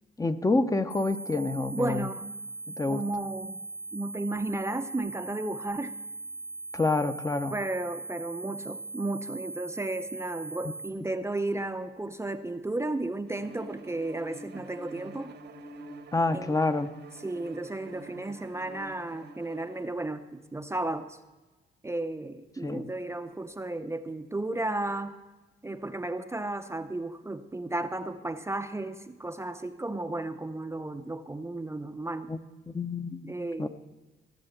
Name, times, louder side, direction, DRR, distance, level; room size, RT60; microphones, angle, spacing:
voice 1, 0.2-2.0 2.8-3.0 6.7-7.5 16.1-16.9 22.6-22.8 32.3-32.4 32.7-33.3 33.6-33.7, left 2 dB, 15° left, 9 dB, 0.8 m, -27 dB
sound 1, 0.9-10.9, right 2 dB, 60° left, 1.9 m, -40 dB
voice 2, 1.7-2.3 2.9-3.6 3.9-5.9 7.5-15.3 16.3-16.6 17.2-21.2 21.8-25.2 25.6-32.3 33.2-33.7, right 2 dB, 15° right, 8 dB, 0.7 m, -34 dB
Bowed string instrument, 13.4-19.9, right 2 dB, 65° right, 1.2 m, -47 dB
16.0 x 7.0 x 8.0 m, 1.2 s
cardioid pair, 90°, 20 cm